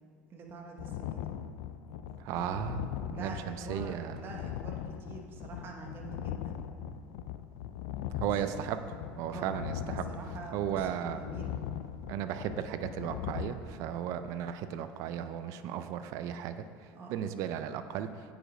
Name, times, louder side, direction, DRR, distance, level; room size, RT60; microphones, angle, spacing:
voice 1, 0.3-1.3 3.1-6.7 9.3-11.6 16.9-17.2, right 3 dB, 40° right, 1 dB, 1.0 m, -46 dB
sound 1, 0.8-13.5, left 10 dB, 80° left, 0.4 m, -40 dB
voice 2, 2.2-4.1 8.2-10.1 10.5-11.2 12.1-16.6 17.1-18.1, right 10 dB, 60° right, 10 dB, 0.4 m, -35 dB
8.8 x 5.1 x 4.9 m, 2.1 s
supercardioid pair, 125°, 6 cm